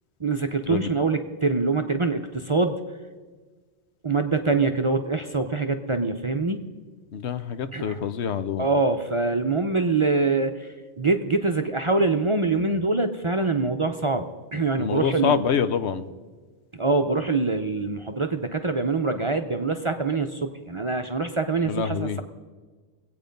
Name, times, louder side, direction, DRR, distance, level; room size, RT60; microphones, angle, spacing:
voice 1, 0.2-2.8 4.0-6.6 7.7-8.1 8.6-10.7 11.0-14.3 14.5-15.4 16.7-22.2, right 3 dB, 35° right, 5 dB, 0.6 m, -24 dB
voice 2, 7.1-8.6 14.8-16.0 21.7-22.2, left 7 dB, 75° left, 11 dB, 1.0 m, -26 dB
21.5 x 8.6 x 5.2 m, 1.4 s
omnidirectional pair, 1.2 m